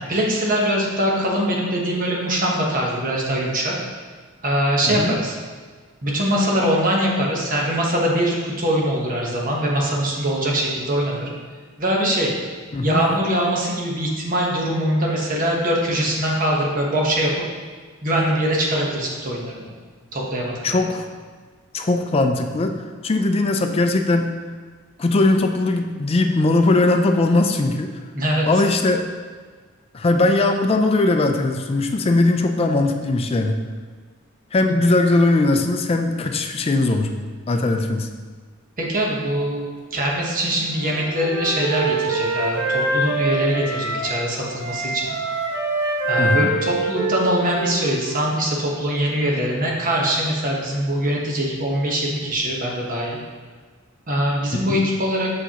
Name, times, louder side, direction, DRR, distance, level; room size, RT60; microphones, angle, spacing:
voice 1, 0.0-3.7 4.4-5.4 6.0-11.3 11.8-12.3 12.8-17.4 18.0-19.7 20.1-20.5 28.1-28.5 34.6-34.8 38.8-39.6 39.9-45.1 46.1-53.2 54.1-55.3, equal, 45° right, -2 dB, 1.1 m, -22 dB
voice 2, 20.6-21.1 21.7-22.8 23.0-24.3 25.0-28.0 28.5-29.0 29.9-33.6 34.5-37.1 37.5-38.1 46.2-46.5 54.5-54.9, left 2 dB, 30° left, 5 dB, 0.4 m, -19 dB
Wind instrument woodwind instrument, 40.7-44.2 44.6-48.3, right 2 dB, 75° right, 1.2 m, -25 dB
6.7 x 4.8 x 2.9 m, 1.5 s
head